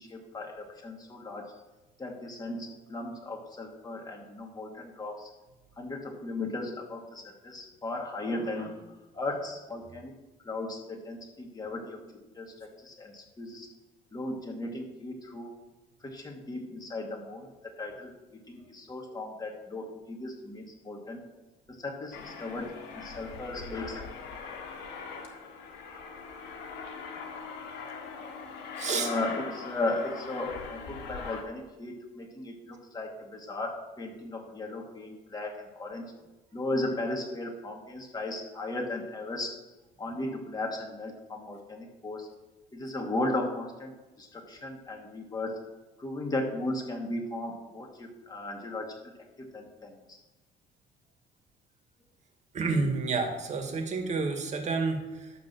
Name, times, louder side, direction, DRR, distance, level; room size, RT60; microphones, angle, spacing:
voice 1, 0.0-1.5 2.0-5.3 5.8-10.1 10.4-12.0 12.3-13.7 14.1-15.5 16.0-21.2 21.7-24.1 28.9-36.1 36.5-39.5 40.0-42.3 42.7-43.9 44.2-45.6 46.0-49.1 49.4-50.2, left 2 dB, 20° left, 0 dB, 2.5 m, -36 dB
Aircraft, 22.1-31.4, left 5 dB, 80° left, 1.8 m, -41 dB
voice 2, 28.8-29.1 52.5-55.3, right 4 dB, 45° right, 4 dB, 2.0 m, -29 dB
11.5 x 3.9 x 7.6 m, 1.1 s
cardioid pair, 110°, 17 cm